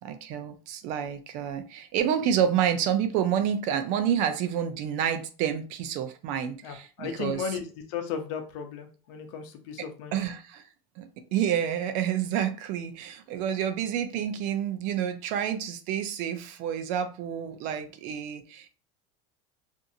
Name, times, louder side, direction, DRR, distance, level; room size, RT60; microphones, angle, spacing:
voice 1, 0.0-7.4 10.1-10.6 11.0-18.7, right 9 dB, 55° right, 0.5 m, -29 dB
voice 2, 6.6-10.2, left 6 dB, 70° left, 0.7 m, -35 dB
2.6 x 2.5 x 2.6 m
supercardioid pair, 140°, 16 cm